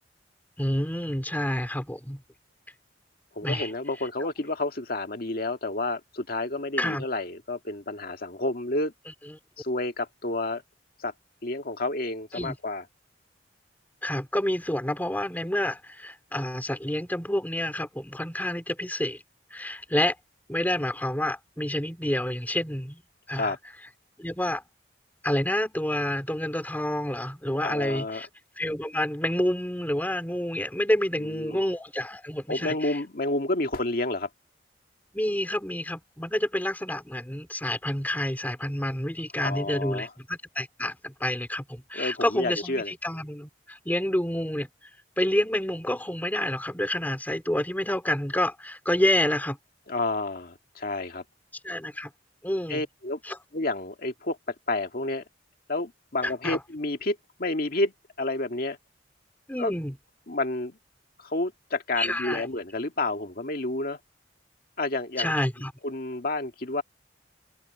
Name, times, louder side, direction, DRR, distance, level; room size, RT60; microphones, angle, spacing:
voice 1, 0.6-2.2 3.4-3.7 6.8-7.0 9.3-9.4 12.3-12.6 14.0-19.2 19.5-20.1 20.5-23.0 23.3-23.5 24.2-24.6 25.2-28.3 28.6-33.0 35.1-44.7 45.2-49.6 51.6-52.1 52.4-52.8 53.2-53.4 56.2-56.6 59.5-60.0 62.0-62.5 65.2-65.7, left 1 dB, 10° left, 3.3 m, -28 dB
voice 2, 3.4-8.9 9.6-10.6 11.0-11.1 11.4-12.8 23.4-23.6 27.6-28.2 31.2-31.6 32.5-34.3 39.4-40.1 41.9-42.9 49.9-51.2 52.7-53.2 53.5-55.2 55.7-58.8 59.6-59.7 60.3-60.8 61.2-64.0 64.8-65.3 65.8-66.8, left 2 dB, 55° left, 1.9 m, -30 dB
open air
head